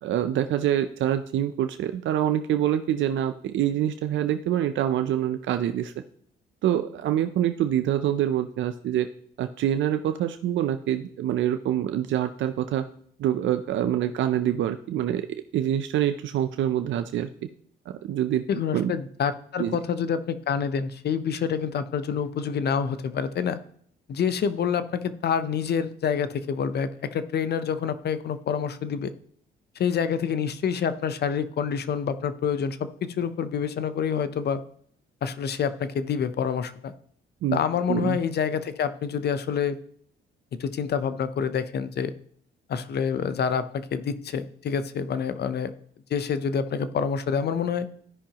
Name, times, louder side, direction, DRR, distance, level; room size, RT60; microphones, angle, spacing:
voice 1, 0.0-5.9 6.6-9.1 9.4-12.8 13.2-15.3 15.5-17.3 18.0-18.4 18.7-18.9 19.6-19.8 37.4-37.6 37.9-38.2, right 11 dB, 70° right, 9 dB, 0.5 m, -25 dB
voice 2, 18.5-23.6 24.1-29.1 29.8-34.6 35.2-36.9 37.5-39.8 40.6-42.1 42.7-45.7 46.1-47.9, left 7 dB, 55° left, 12 dB, 0.7 m, -27 dB
14.5 x 5.6 x 2.9 m, 0.62 s
cardioid pair, 90°, 20 cm